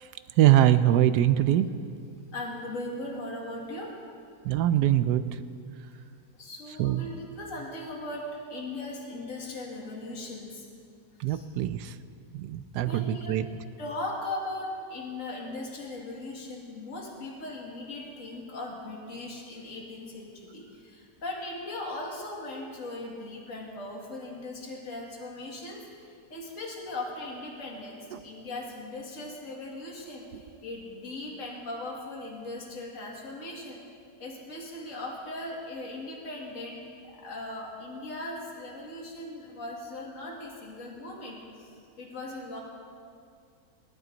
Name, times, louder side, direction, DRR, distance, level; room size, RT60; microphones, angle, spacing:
voice 1, 0.4-1.7 4.5-5.2 6.8-7.0 11.2-11.9 12.4-13.4, right 12 dB, 80° right, 13 dB, 1.1 m, -22 dB
voice 2, 2.3-4.0 6.3-10.7 11.3-11.5 12.8-13.4 13.8-33.8 34.2-41.7 42.0-42.6, left 2 dB, 50° left, -2 dB, 2.4 m, -39 dB
21.5 x 12.0 x 3.9 m, 2.3 s
omnidirectional pair, 1.8 m